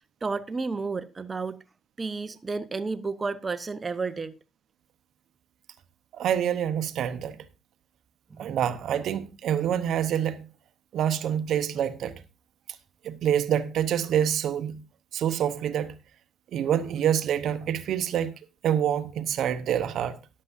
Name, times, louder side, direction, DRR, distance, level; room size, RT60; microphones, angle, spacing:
voice 1, 0.2-1.6 2.0-4.3 8.3-8.6, right 4 dB, 30° right, 0.9 m, -31 dB
voice 2, 6.1-7.4 8.4-10.5 10.9-12.1 13.0-14.8 15.1-15.9 16.5-18.3 18.6-20.2, right 9 dB, 75° right, 0.9 m, -26 dB
14.0 x 11.0 x 2.6 m
cardioid pair, 90°, 0 cm